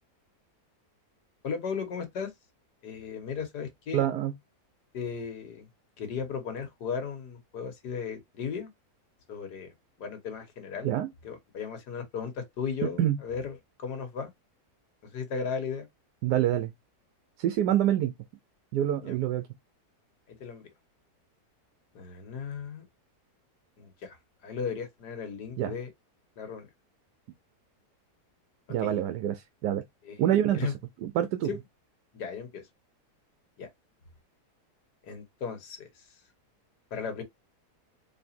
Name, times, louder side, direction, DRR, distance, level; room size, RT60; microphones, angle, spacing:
voice 1, 1.4-2.3 2.8-4.0 4.9-5.7 6.0-8.7 9.3-10.9 11.2-14.3 15.0-15.9 19.0-19.2 20.3-20.7 21.9-22.8 23.8-24.2 24.4-25.9 26.4-26.7 28.8-29.0 30.1-30.2 30.5-30.7 31.5-31.6 32.1-32.6 33.6-33.7 35.0-36.0 36.9-37.2, left 6 dB, 85° left, 1.8 m, -36 dB
voice 2, 3.9-4.3 10.8-11.1 12.8-13.2 16.2-16.7 17.4-18.1 18.7-19.5 25.6-25.7 28.7-29.8 30.2-30.7 31.0-31.5, right 11 dB, 85° right, 1.2 m, -26 dB
4.2 x 3.4 x 2.7 m
omnidirectional pair, 1.7 m